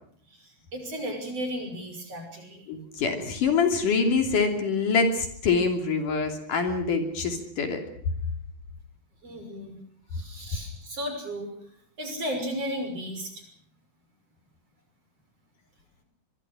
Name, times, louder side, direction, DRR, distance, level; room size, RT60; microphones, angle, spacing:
voice 1, 0.3-2.6 9.2-9.8 10.1-11.5 12.0-13.4, equal, 40° right, 5 dB, 6.9 m, -34 dB
voice 2, 2.7-7.8, left 4 dB, 60° left, 5 dB, 4.4 m, -25 dB
25.0 x 23.0 x 6.2 m, 0.62 s
omnidirectional pair, 4.2 m